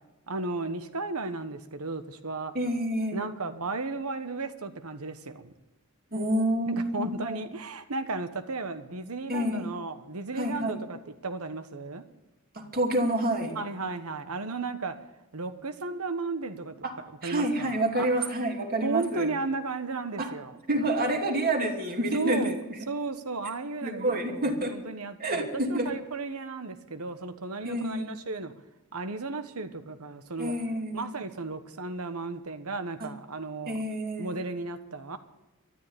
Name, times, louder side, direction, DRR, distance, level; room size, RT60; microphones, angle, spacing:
voice 1, 0.3-2.5 3.1-5.5 6.7-12.0 13.5-14.9 15.3-16.7 17.2-17.7 18.0-18.3 18.8-20.5 22.1-28.5 28.9-30.5 30.9-33.8 34.2-35.2, right 3 dB, 75° right, 9 dB, 1.3 m, -34 dB
voice 2, 2.5-3.3 6.1-7.4 9.3-9.7 10.3-10.8 12.5-13.6 16.8-16.9 17.2-19.3 20.2-20.3 20.7-22.5 23.8-24.8 25.2-26.0 27.6-28.1 30.4-31.1 33.0-33.1 33.7-34.3, right 1 dB, 45° right, 1 dB, 2.7 m, -28 dB
13.5 x 10.5 x 8.6 m, 1.0 s
head